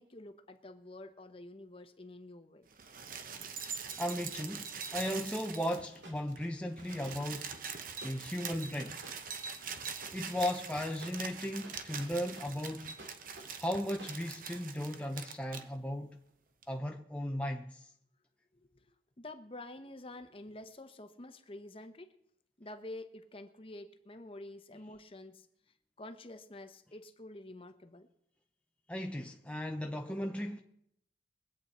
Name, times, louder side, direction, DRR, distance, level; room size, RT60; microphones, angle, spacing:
voice 1, 0.0-2.7 18.5-18.7 19.2-22.1 22.6-25.5 26.0-28.1, left 2 dB, 30° left, 0.8 m, -48 dB
sound 1, 2.7-6.0 6.3-6.4 6.6-15.7 16.6-16.7, right 6 dB, 50° right, 0.9 m, -43 dB
voice 2, 4.0-7.5 8.0-9.0 10.1-13.0 13.6-16.2 16.7-17.9 28.9-30.6, equal, 5° left, 0.6 m, -36 dB
sound 2, 5.0-14.1, right 2 dB, 90° right, 2.3 m, -55 dB
22.0 x 8.7 x 4.3 m
head